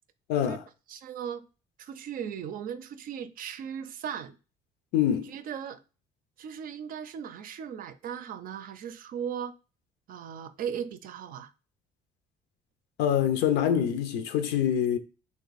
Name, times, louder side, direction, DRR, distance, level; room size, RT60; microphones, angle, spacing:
voice 1, 0.3-0.6 4.9-5.3 13.0-15.0, left 9 dB, 90° left, 0.6 m, -25 dB
voice 2, 0.9-1.5 1.8-4.4 5.1-5.8 6.4-9.5 10.1-11.5, right 8 dB, 55° right, 0.5 m, -37 dB
3.6 x 2.7 x 4.0 m
cardioid pair, 110°, 17 cm